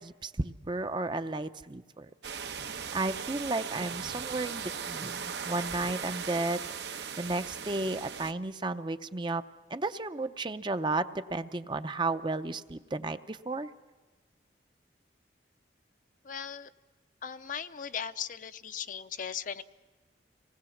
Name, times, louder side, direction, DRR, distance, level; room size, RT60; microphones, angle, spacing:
voice 1, 0.0-2.1 2.9-9.4 9.7-13.7, right 2 dB, 25° right, 10 dB, 0.6 m, -33 dB
sound 1, 2.2-8.3, right 6 dB, 75° right, 1.0 m, -38 dB
voice 2, 16.2-16.7 17.2-19.6, left 7 dB, 45° left, 11 dB, 0.6 m, -38 dB
25.5 x 19.5 x 7.2 m, 1.3 s
head